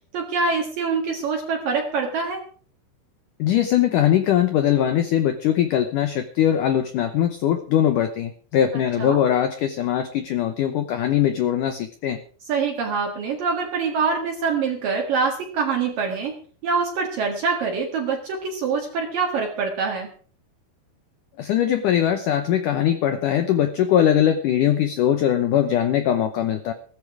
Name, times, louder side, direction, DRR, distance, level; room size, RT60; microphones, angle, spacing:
voice 1, 0.1-2.4 8.7-9.2 12.5-16.3 16.6-20.1, right 5 dB, 60° right, 1 dB, 3.2 m, -25 dB
voice 2, 3.4-12.2 21.4-26.7, left 10 dB, 75° left, 9 dB, 2.0 m, -21 dB
16.0 x 14.0 x 4.8 m, 0.44 s
omnidirectional pair, 4.8 m